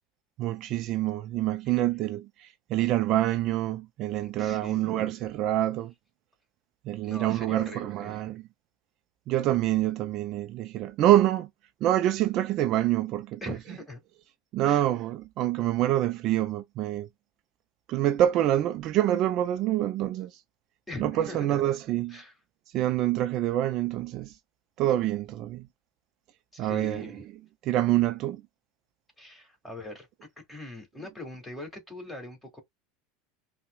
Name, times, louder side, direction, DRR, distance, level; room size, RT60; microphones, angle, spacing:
voice 1, 0.4-5.9 6.8-8.4 9.3-11.5 11.8-13.4 14.5-17.1 17.9-20.4 21.0-22.2 22.7-24.4 24.8-25.7 26.6-27.2 27.6-28.4, right 13 dB, 50° right, 0.3 m, -26 dB
voice 2, 4.2-5.1 7.0-8.2 13.4-14.0 14.6-14.8 20.9-21.6 22.1-22.3 26.5-27.2 29.2-32.6, left 2 dB, 10° left, 1.8 m, -42 dB
5.4 x 2.1 x 2.3 m
supercardioid pair, 115°, 0 cm